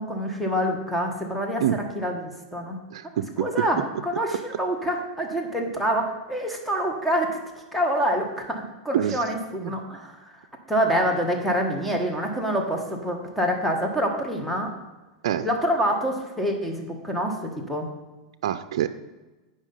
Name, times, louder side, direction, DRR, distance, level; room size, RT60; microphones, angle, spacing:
voice 1, 0.0-2.8 3.4-7.4 7.7-10.2 10.7-14.7 15.4-17.9, equal, ahead, 1 dB, 1.6 m, -26 dB
voice 2, 2.9-3.7 8.9-9.2 9.6-9.7 15.2-15.5 18.4-18.9, right 11 dB, 75° right, 10 dB, 0.4 m, -25 dB
8.8 x 5.5 x 5.6 m, 1.1 s
hypercardioid pair, 120°, 3 cm